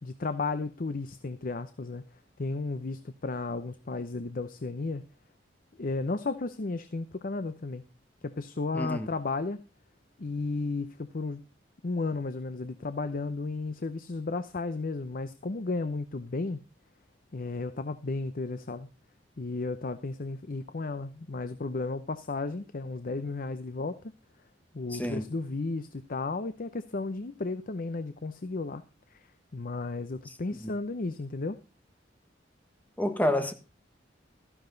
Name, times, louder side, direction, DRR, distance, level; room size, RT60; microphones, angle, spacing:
voice 1, 0.0-2.0 2.4-5.0 5.8-7.8 8.2-9.6 10.2-11.4 11.8-16.6 17.3-18.9 19.4-24.0 24.7-28.8 29.1-29.3 29.5-31.6, left 3 dB, 50° left, 0.7 m, -33 dB
voice 2, 8.7-9.1 24.9-25.2 30.6-30.7 33.0-33.5, left 1 dB, 10° left, 1.4 m, -28 dB
13.5 x 11.0 x 3.9 m
head